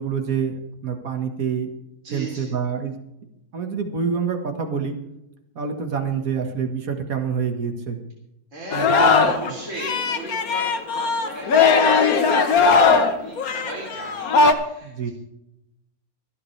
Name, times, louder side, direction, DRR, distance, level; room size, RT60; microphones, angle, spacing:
voice 1, 0.0-1.7 2.1-2.9 3.5-5.0 5.6-8.0 8.7-9.3 14.8-15.1, right 6 dB, 75° right, 4 dB, 2.0 m, -26 dB
voice 2, 2.0-2.5 8.5-15.1, right 2 dB, 60° right, -3 dB, 3.7 m, -36 dB
Singing, 8.7-9.5 9.8-14.5, left 4 dB, 85° left, 1.6 m, -18 dB
26.0 x 9.6 x 3.3 m, 0.86 s
omnidirectional pair, 1.5 m